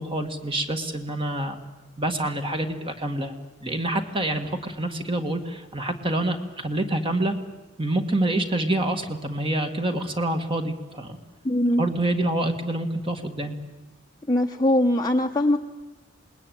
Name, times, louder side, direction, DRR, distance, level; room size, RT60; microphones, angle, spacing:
voice 1, 0.0-1.6 2.0-3.3 3.6-7.3 7.8-11.2 11.8-13.6, right 1 dB, 25° right, 5 dB, 1.8 m, -27 dB
voice 2, 11.4-11.8 14.3-15.6, left 1 dB, 20° left, 2 dB, 0.9 m, -21 dB
27.5 x 20.0 x 9.2 m, 1.1 s
head